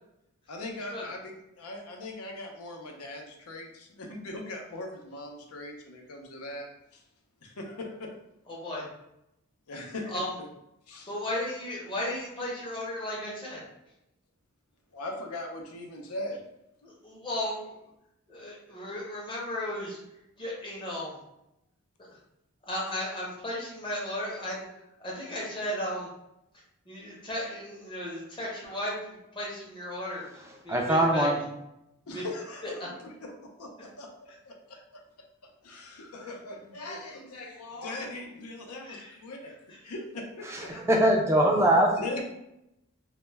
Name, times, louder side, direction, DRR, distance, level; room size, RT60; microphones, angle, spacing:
voice 1, 0.5-6.7 6.9-7.0 7.4-8.1 9.7-10.5 10.9-11.1 14.9-16.4 32.1-32.8 33.2-33.3 33.6-35.0 35.6-39.6 39.8-40.8 41.9-42.2, left 2 dB, 90° left, 2 dB, 0.5 m, -40 dB
voice 2, 8.5-8.8 10.1-10.3 11.1-13.6 16.8-17.8 18.3-20.0 20.4-21.1 22.7-24.6 25.0-26.1 26.9-31.3 32.1-32.2 32.6-32.7 33.8-33.9 38.8-39.2 39.7-39.8, left 1 dB, 20° left, -5 dB, 0.6 m, -35 dB
voice 3, 30.7-31.4 40.5-41.9, right 1 dB, 10° right, 0 dB, 0.3 m, -22 dB
2.1 x 2.0 x 3.2 m, 0.85 s
head